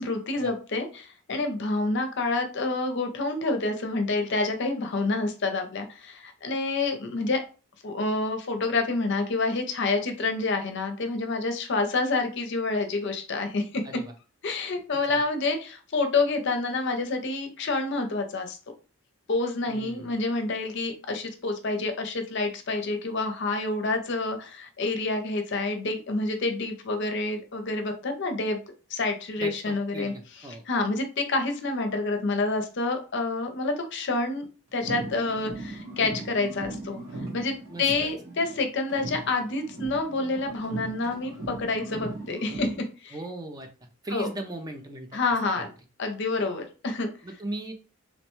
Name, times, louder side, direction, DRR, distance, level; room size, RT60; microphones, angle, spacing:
voice 1, 0.0-7.4 7.8-13.8 14.4-18.6 19.3-28.6 28.9-30.1 30.7-34.5 34.7-37.0 37.3-37.5 37.8-42.7 43.0-43.2 44.1-44.3 45.1-45.7 46.0-47.1, left 3 dB, 55° left, 5 dB, 0.5 m, -28 dB
voice 2, 19.7-20.1 29.4-30.6 37.7-37.9 43.1-45.2 45.6-45.7 47.2-47.7, right 1 dB, 15° right, 4 dB, 0.4 m, -38 dB
sound 1, 34.7-38.6 38.9-42.9, right 2 dB, 85° right, 1.2 m, -39 dB
2.9 x 2.1 x 3.0 m, 0.36 s
head